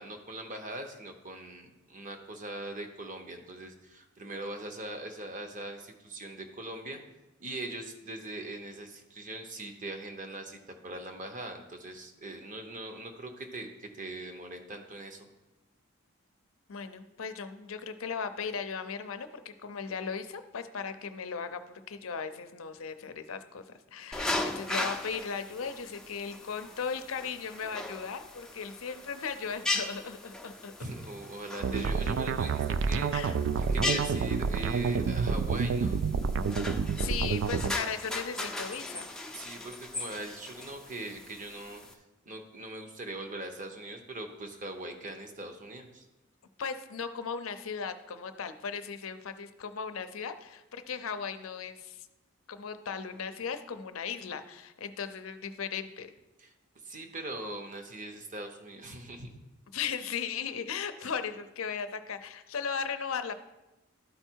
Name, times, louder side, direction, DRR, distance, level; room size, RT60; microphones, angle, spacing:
voice 1, 0.0-7.0 7.4-15.3 30.8-33.1 33.7-36.0 39.3-46.1 56.4-56.5 56.8-59.3 61.0-61.1, right 2 dB, 40° right, 5 dB, 0.9 m, -41 dB
voice 2, 16.7-23.6 23.9-30.7 33.1-33.4 36.6-36.7 37.0-39.1 46.6-52.1 52.5-56.1 59.7-63.3, left 6 dB, 75° left, 9 dB, 0.6 m, -37 dB
sound 1, 24.1-41.9, left 2 dB, 5° left, 0.5 m, -38 dB
sound 2, 31.6-37.7, right 5 dB, 60° right, 0.3 m, -29 dB
12.0 x 4.5 x 4.5 m, 1.0 s
head